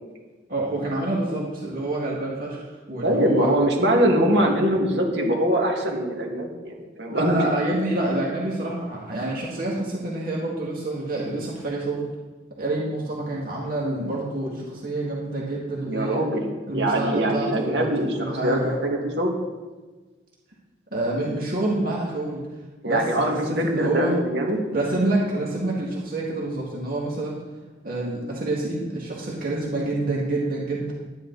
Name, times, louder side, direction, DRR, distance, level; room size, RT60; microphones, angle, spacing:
voice 1, 0.5-3.5 7.1-12.1 12.6-16.2 16.7-18.7 20.9-22.4 22.8-24.2 24.7-27.4 27.8-30.9, right 2 dB, 50° right, -4 dB, 2.2 m, -27 dB
voice 2, 3.0-7.4 14.0-14.1 15.9-19.3 22.8-24.6, right 1 dB, 65° right, 0 dB, 2.1 m, -23 dB
11.5 x 10.5 x 4.1 m, 1.3 s
head